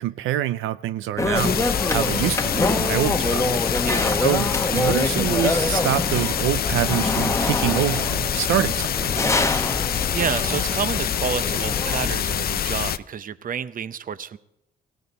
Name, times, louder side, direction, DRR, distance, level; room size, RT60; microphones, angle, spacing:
voice 1, 0.0-3.6 4.2-9.3, right 13 dB, 85° right, 14 dB, 0.5 m, -26 dB
sound 1, 1.2-12.1, left 2 dB, 15° left, 1.0 m, -25 dB
sound 2, 1.3-13.0, left 10 dB, 50° left, 0.5 m, -26 dB
voice 2, 3.8-4.2 9.8-9.9 10.1-14.4, right 7 dB, 45° right, 15 dB, 0.7 m, -29 dB
18.0 x 17.0 x 4.1 m, 0.86 s
cardioid pair, 90°, 20 cm